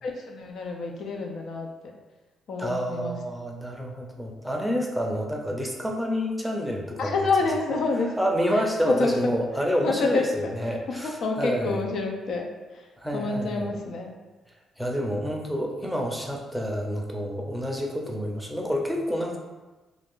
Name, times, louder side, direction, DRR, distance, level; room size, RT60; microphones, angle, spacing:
voice 1, 0.0-1.9 2.5-3.2 7.0-8.2 8.5-9.3 9.8-12.9 13.1-14.1, left 3 dB, 65° left, 2 dB, 0.4 m, -28 dB
voice 2, 2.6-7.1 8.2-11.8 13.0-13.7 14.8-19.4, equal, 5° right, 0 dB, 0.5 m, -28 dB
2.4 x 2.4 x 3.6 m, 1.2 s
cardioid pair, 90°, 0 cm